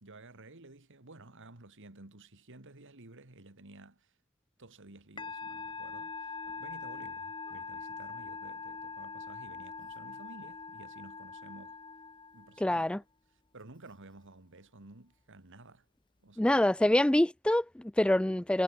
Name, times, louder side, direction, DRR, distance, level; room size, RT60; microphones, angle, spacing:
voice 1, 0.0-4.1 4.6-6.3 6.6-11.8 12.3-13.0 13.5-15.8 16.2-16.6, right 2 dB, 60° right, 2.2 m, -53 dB
Musical instrument, 5.2-12.8, left 4 dB, 20° left, 1.0 m, -43 dB
voice 2, 12.6-13.0 16.4-18.6, left 1 dB, 5° left, 0.3 m, -26 dB
head